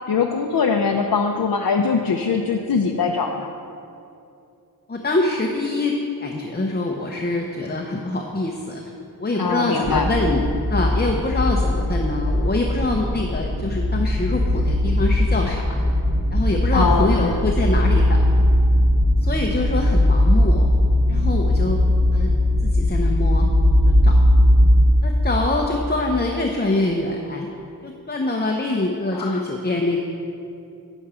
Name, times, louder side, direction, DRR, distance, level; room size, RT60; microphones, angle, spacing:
voice 1, 0.1-3.5 9.4-10.1 16.7-17.5 29.1-29.4, left 5 dB, 60° left, 3 dB, 0.6 m, -22 dB
voice 2, 4.9-5.9 6.2-8.8 9.2-15.8 16.3-18.4 19.2-20.7 21.1-21.8 22.1-22.3 22.6-23.5 23.8-24.2 25.0-27.5 27.8-30.0, left 2 dB, 25° left, 1 dB, 0.7 m, -24 dB
sound 1, 9.8-24.9, left 1 dB, 40° right, 2.1 m, -19 dB
9.0 x 7.0 x 4.9 m, 2.7 s
wide cardioid pair, 60°, 40 cm